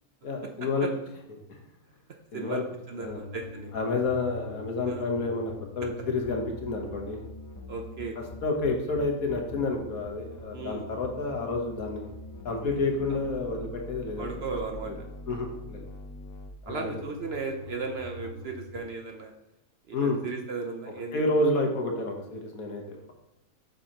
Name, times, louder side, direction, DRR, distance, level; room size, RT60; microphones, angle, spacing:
voice 1, 0.2-0.9 1.5-1.6 2.3-2.6 3.0-3.2 3.7-7.2 8.4-12.1 12.4-14.3 14.8-14.9 15.3-15.8 16.6-17.0 19.9-20.2 21.1-23.1, left 3 dB, 75° left, 2 dB, 1.6 m, -29 dB
voice 2, 2.9-3.7 4.9-5.1 7.7-8.2 10.5-10.9 13.1-13.2 14.2-14.9 16.7-19.3 19.9-21.5, right 4 dB, 55° right, 3 dB, 0.8 m, -36 dB
sound 1, 3.0-18.8, left 1 dB, 25° left, 0.4 m, -43 dB
8.0 x 6.3 x 2.9 m, 0.89 s
omnidirectional pair, 1.5 m